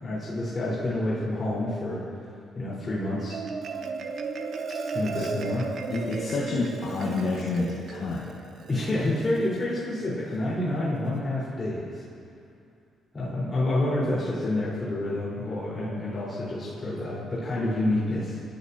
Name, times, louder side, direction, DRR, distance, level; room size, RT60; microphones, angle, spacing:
voice 1, 0.0-2.0 2.5-3.4 4.9-5.7 8.7-12.0 13.1-18.4, left 1 dB, 35° left, -8 dB, 4.6 m, -28 dB
Marimba xylophone, 3.0-9.6, right 4 dB, 60° right, 1.1 m, -35 dB
voice 2, 5.9-8.3, left 3 dB, 65° left, -4 dB, 1.8 m, -29 dB
28.0 x 12.5 x 2.9 m, 2.4 s
cardioid pair, 90°, 0 cm